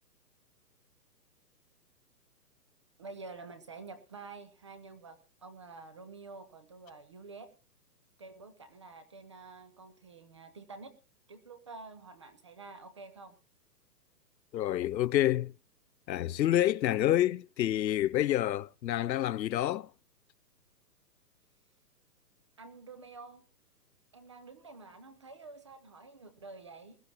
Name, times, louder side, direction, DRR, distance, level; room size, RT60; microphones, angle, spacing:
voice 1, 3.0-7.5 8.2-10.9 11.3-13.4 22.6-23.4 24.1-27.0, right 3 dB, 20° right, 0.8 m, -49 dB
voice 2, 14.5-15.5 16.1-19.9, left 12 dB, 85° left, 0.7 m, -28 dB
20.5 x 13.5 x 2.9 m
hypercardioid pair, 175°, 50 cm